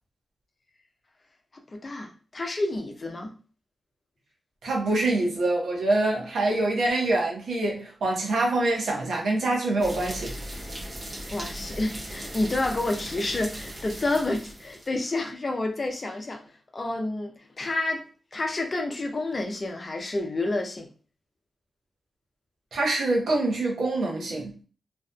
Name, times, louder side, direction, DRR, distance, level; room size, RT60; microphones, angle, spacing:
voice 1, 1.7-3.3 11.3-16.4 16.7-18.0 18.3-20.9, left 2 dB, 45° left, 0.6 m, -29 dB
voice 2, 4.6-10.3 22.7-24.5, right 2 dB, 80° right, 0.8 m, -25 dB
sound 1, 9.8-14.9, right 1 dB, 45° right, 0.9 m, -38 dB
2.6 x 2.4 x 2.2 m
supercardioid pair, 40°, 0 cm